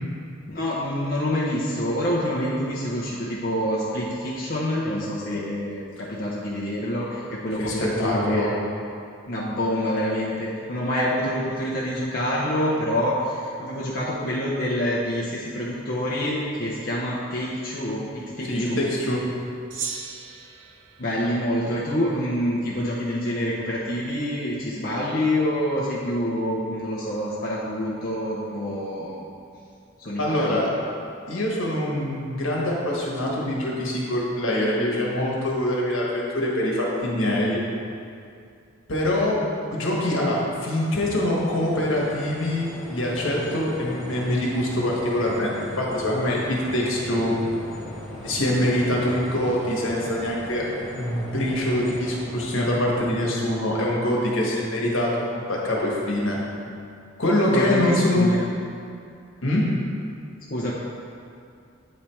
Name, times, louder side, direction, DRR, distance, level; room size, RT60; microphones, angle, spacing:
voice 1, 0.5-8.6 9.3-18.8 21.0-29.3 30.0-30.6 57.5-58.4 60.5-60.7, equal, 45° left, -6 dB, 0.7 m, -27 dB
voice 2, 7.6-8.5 18.5-19.2 30.2-30.7 31.3-37.6 38.9-47.3 48.2-50.6 50.9-56.4 57.2-58.3 59.4-59.6, left 1 dB, 80° left, -4 dB, 1.3 m, -24 dB
Gong, 19.7-22.3, right 6 dB, 70° right, 0.6 m, -38 dB
sound 1, 41.0-52.5, equal, ahead, 1.1 m, -39 dB
8.4 x 3.3 x 4.3 m, 2.4 s
head